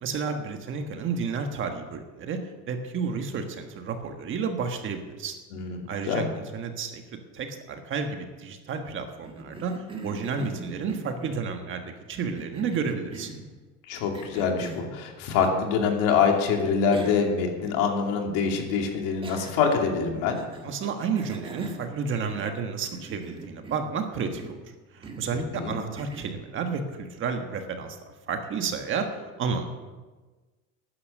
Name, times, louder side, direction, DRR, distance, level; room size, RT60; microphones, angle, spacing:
voice 1, 0.0-2.4 2.7-5.4 5.9-13.3 20.6-24.5 24.9-28.0 28.3-29.7, right 5 dB, 35° right, 5 dB, 1.5 m, -31 dB
voice 2, 5.5-6.3 13.9-20.4 25.3-25.8, left 6 dB, 75° left, 2 dB, 2.7 m, -25 dB
Cough, 9.2-11.4 12.2-13.5 14.1-14.9 16.3-16.4 16.9-17.3 17.7-17.8 19.2-19.8 20.3-20.7 21.2-22.6 22.9-24.0 24.3-24.6 25.0-25.3 26.0-26.4, right 2 dB, 15° right, 1.6 m, -42 dB
13.0 x 9.8 x 6.6 m, 1.3 s
cardioid pair, 150°, 33 cm